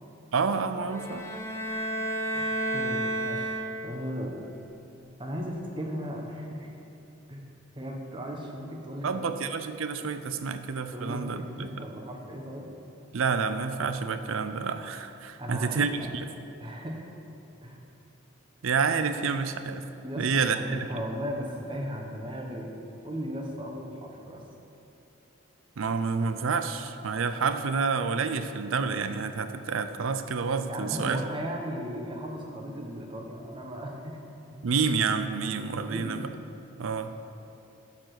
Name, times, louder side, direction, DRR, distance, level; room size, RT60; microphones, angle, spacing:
voice 1, 0.3-1.3 9.0-11.8 13.1-16.3 18.6-19.8 20.2-20.8 25.8-31.2 34.6-36.3 36.8-37.2, right 5 dB, 85° right, 10 dB, 0.5 m, -29 dB
sound 1, 0.9-4.1, right 1 dB, 15° left, 0.6 m, -31 dB
voice 2, 2.3-3.5 3.8-4.5 5.2-6.7 7.3-7.5 7.8-9.3 10.5-10.6 10.9-12.7 15.4-16.1 16.6-17.1 17.6-17.8 20.0-22.8 23.0-24.4 30.7-34.2 34.5-34.7 35.8-36.3, equal, 25° right, 1 dB, 1.0 m, -36 dB
11.5 x 4.8 x 5.9 m, 2.7 s
head